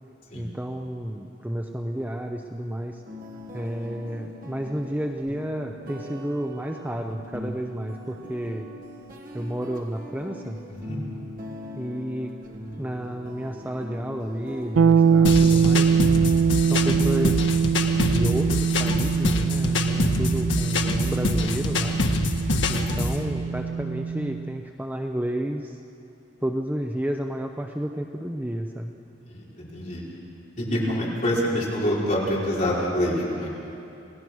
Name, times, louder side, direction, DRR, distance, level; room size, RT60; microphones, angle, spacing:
voice 1, 0.3-3.0 3.5-8.7 9.3-10.6 11.7-12.3 12.8-15.9 16.7-17.4 18.0-22.0 22.7-25.8 26.4-28.9, right 1 dB, 10° right, 3 dB, 0.7 m, -31 dB
sound 1, 3.1-16.7, left 1 dB, 45° right, 1.6 m, -41 dB
voice 2, 10.7-11.0 20.0-20.4 29.2-30.0 30.6-33.5, equal, 40° left, -6 dB, 5.1 m, -26 dB
sound 2, 14.8-24.5, right 6 dB, 85° right, 0.4 m, -22 dB
sound 3, 15.2-23.2, left 2 dB, 80° left, 1.5 m, -25 dB
28.0 x 17.5 x 6.3 m, 2.8 s
head